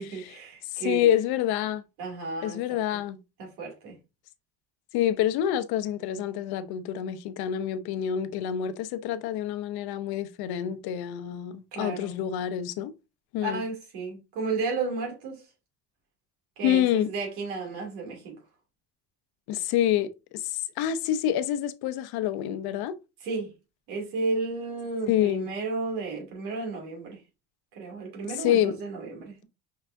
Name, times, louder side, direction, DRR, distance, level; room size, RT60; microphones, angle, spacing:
voice 1, 0.0-1.1 2.0-3.0 3.4-4.0 11.7-12.2 13.4-15.4 16.6-18.3 23.2-23.5 23.9-27.2 27.7-29.4, right 3 dB, 85° right, 2.5 m, -33 dB
voice 2, 0.7-1.8 2.4-3.2 4.9-12.9 13.3-13.6 16.6-17.1 19.5-20.5 20.8-22.9 25.1-25.5 28.3-28.8, left 11 dB, 75° left, 0.7 m, -27 dB
5.6 x 3.4 x 2.5 m
cardioid pair, 110°, 38 cm